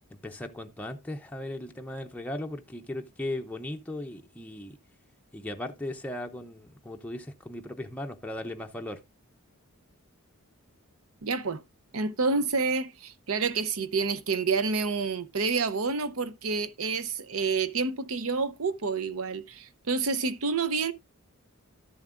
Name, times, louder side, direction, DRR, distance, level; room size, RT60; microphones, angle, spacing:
voice 1, 0.2-4.8 5.3-9.0, left 1 dB, 5° left, 0.5 m, -37 dB
voice 2, 11.2-11.6 11.9-20.9, right 4 dB, 75° right, 0.8 m, -28 dB
12.5 x 7.2 x 2.5 m
head